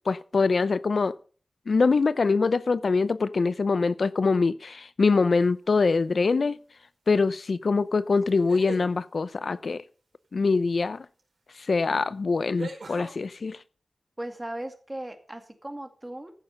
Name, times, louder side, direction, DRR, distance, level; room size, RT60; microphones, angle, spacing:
voice 1, 0.1-1.2 1.7-6.6 7.1-9.8 10.3-11.1 11.6-13.6, left 4 dB, 70° left, 0.5 m, -24 dB
sound 1, 5.7-6.1 8.3-8.9 11.2-11.3 12.6-13.1, right 3 dB, 85° right, 4.8 m, -39 dB
voice 2, 14.2-16.3, right 1 dB, 20° right, 2.2 m, -37 dB
15.0 x 6.7 x 5.5 m
wide cardioid pair, 85°, 0 cm